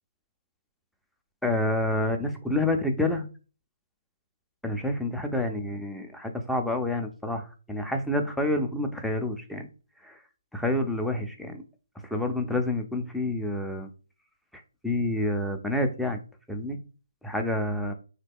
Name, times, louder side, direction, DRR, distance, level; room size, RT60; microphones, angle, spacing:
voice 1, 1.4-3.3 4.6-9.7 10.0-10.1 10.5-11.6 12.1-13.9 14.8-16.2 16.5-16.8 17.2-17.9, left 1 dB, ahead, 4 dB, 0.4 m, -28 dB
3.1 x 2.1 x 3.4 m, 0.35 s
hypercardioid pair, 145°, 0 cm